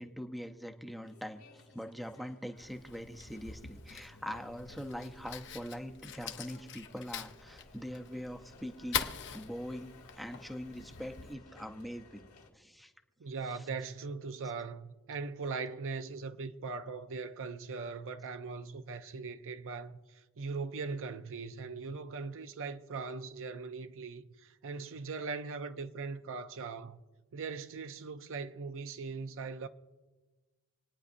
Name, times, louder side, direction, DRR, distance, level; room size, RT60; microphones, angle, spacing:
voice 1, 0.0-9.1 9.3-12.3 12.5-12.9 13.5-13.6, equal, ahead, 0.6 m, -43 dB
sound 1, 1.1-12.5, left 2 dB, 90° left, 2.2 m, -58 dB
Fire, 2.6-11.3, left 8 dB, 55° left, 0.8 m, -43 dB
voice 2, 13.2-27.0 27.3-29.7, right 4 dB, 60° right, 0.6 m, -40 dB
27.5 x 9.6 x 2.6 m
head